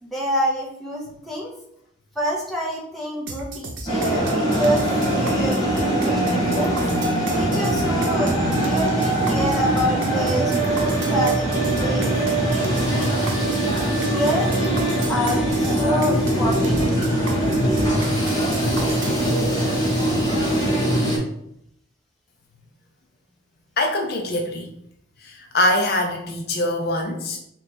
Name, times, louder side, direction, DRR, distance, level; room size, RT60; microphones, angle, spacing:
voice 1, 0.0-1.5 2.1-6.8 7.3-11.5 11.7-13.2 14.0-14.8 15.1-17.0, equal, ahead, -5 dB, 0.9 m, -27 dB
sound 1, 3.3-19.2, right 3 dB, 75° right, 0.7 m, -35 dB
sound 2, 3.9-21.2, right 1 dB, 20° left, 1.6 m, -21 dB
voice 2, 23.8-24.7 25.2-27.4, left 1 dB, 55° left, 2 dB, 0.6 m, -23 dB
3.3 x 3.0 x 4.2 m, 0.74 s
head